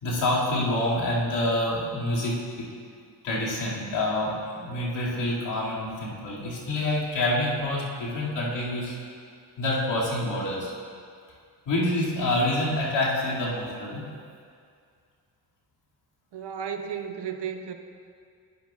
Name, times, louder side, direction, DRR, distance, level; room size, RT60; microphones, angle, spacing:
voice 1, 0.0-2.3 3.2-4.3 4.6-9.0 9.6-10.7 11.7-14.0, left 1 dB, 85° left, -6 dB, 2.4 m, -27 dB
voice 2, 16.3-17.7, right 7 dB, 70° right, 6 dB, 0.8 m, -33 dB
12.0 x 10.5 x 2.4 m, 2.2 s
cardioid pair, 65°, 43 cm